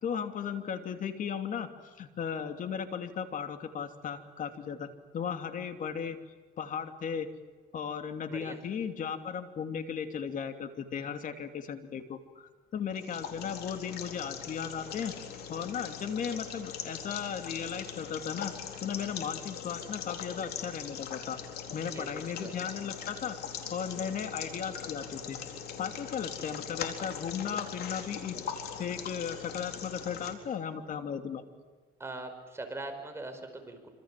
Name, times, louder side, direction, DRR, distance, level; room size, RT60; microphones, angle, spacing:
voice 1, 0.0-1.7 2.0-6.2 6.6-7.3 7.7-15.1 15.5-18.5 18.8-21.4 21.7-23.4 23.7-25.4 25.8-31.4, left 7 dB, 50° left, 7 dB, 2.9 m, -36 dB
voice 2, 8.3-8.6 21.9-22.1 22.4-22.5 32.0-33.9, right 2 dB, 15° right, 5 dB, 5.2 m, -41 dB
sound 1, 12.9-30.3, left 8 dB, 70° left, 4.2 m, -41 dB
26.5 x 26.5 x 7.7 m, 1.4 s
cardioid pair, 110°, 17 cm